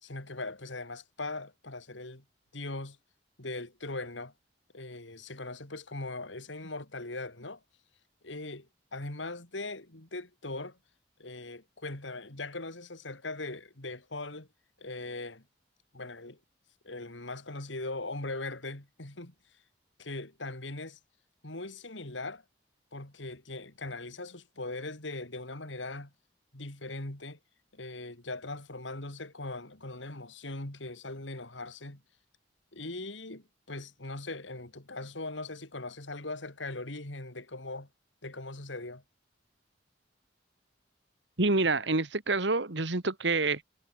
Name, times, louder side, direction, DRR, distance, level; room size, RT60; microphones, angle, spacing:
voice 1, 0.0-2.2 2.5-3.0 3.4-4.3 4.7-7.6 8.2-10.8 11.2-14.5 14.8-15.4 15.9-16.4 16.8-19.3 20.0-21.0 21.4-22.4 22.9-26.1 26.5-27.4 27.7-32.0 32.7-37.9 38.2-39.0, left 2 dB, 85° left, 3.5 m, -40 dB
voice 2, 41.4-43.6, right 3 dB, 75° right, 1.9 m, -27 dB
head